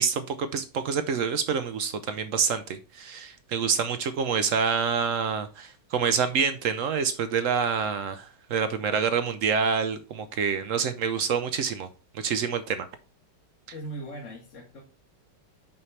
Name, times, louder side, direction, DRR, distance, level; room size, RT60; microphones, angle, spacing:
voice 1, 0.0-11.9 12.1-12.9, right 6 dB, 70° right, 0.8 m, -27 dB
voice 2, 13.7-14.8, right 2 dB, 50° left, 1.4 m, -39 dB
5.7 x 5.5 x 3.2 m
omnidirectional pair, 1.9 m